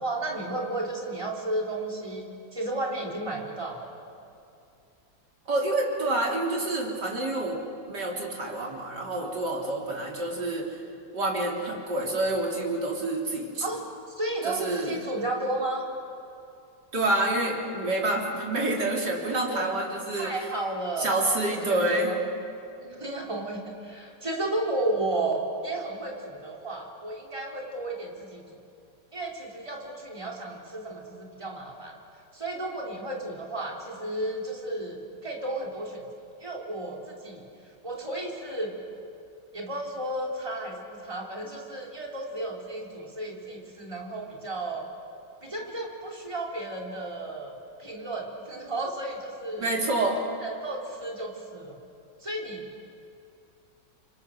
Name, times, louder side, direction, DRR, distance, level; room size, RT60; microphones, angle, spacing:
voice 1, 0.0-3.9 13.6-13.9 14.2-15.9 19.5-19.6 20.1-21.1 21.5-22.2 22.8-28.4 29.1-32.0 32.3-36.1 36.4-37.4 37.8-38.7 39.5-44.9 45.4-49.7 50.4-51.8 52.2-52.7, right 2 dB, 15° right, -2 dB, 3.5 m, -33 dB
voice 2, 5.5-7.6 7.8-10.7 11.1-13.6 14.4-15.0 16.9-20.3 21.0-22.1 49.6-50.2, right 2 dB, 70° right, -1 dB, 4.0 m, -28 dB
29.5 x 25.0 x 6.6 m, 2.5 s
omnidirectional pair, 1.9 m